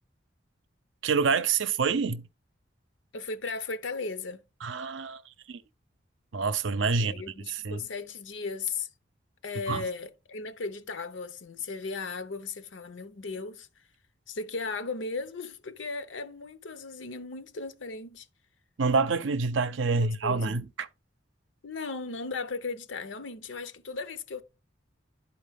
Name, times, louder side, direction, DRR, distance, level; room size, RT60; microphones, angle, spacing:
voice 1, 1.0-2.2 4.6-5.2 5.5-5.6 6.3-7.1 7.5-7.8 9.7-9.8 18.8-20.9, right 4 dB, 85° right, 0.6 m, -27 dB
voice 2, 3.1-4.4 6.9-8.9 9.4-13.7 14.3-18.3 19.9-20.6 21.6-24.4, left 4 dB, 85° left, 0.7 m, -36 dB
11.0 x 4.4 x 3.5 m
head